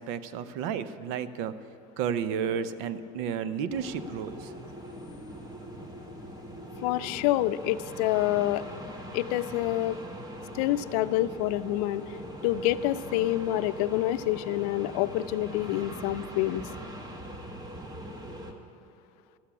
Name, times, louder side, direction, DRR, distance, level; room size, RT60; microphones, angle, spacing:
voice 1, 0.0-1.5 2.0-4.5, right 7 dB, 75° right, 13 dB, 0.8 m, -32 dB
sound 1, 3.7-18.5, equal, 20° right, 1.5 m, -42 dB
voice 2, 6.8-8.6 9.1-10.0 10.5-12.2 12.4-16.6, left 15 dB, 80° left, 14 dB, 0.5 m, -27 dB
13.0 x 8.3 x 8.4 m, 2.8 s
supercardioid pair, 120°, 19 cm